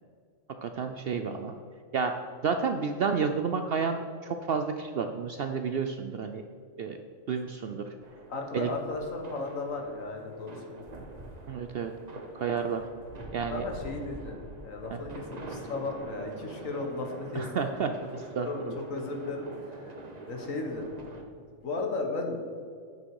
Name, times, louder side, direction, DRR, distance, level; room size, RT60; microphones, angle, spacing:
voice 1, 0.6-1.5 1.9-2.1 2.4-6.4 6.8-7.0 7.3-7.9 8.5-8.7 11.5-11.9 12.3-12.8 13.3-13.6 14.9-15.0 17.3-18.8, right 5 dB, 65° right, 6 dB, 0.6 m, -30 dB
sound 1, 8.0-21.2, right 2 dB, 35° right, 1.0 m, -45 dB
voice 2, 8.3-10.9 13.5-17.6 18.4-20.0 20.3-20.9 21.6-22.4, left 3 dB, 70° left, 3 dB, 1.6 m, -35 dB
9.6 x 6.3 x 4.7 m, 2.3 s
omnidirectional pair, 1.4 m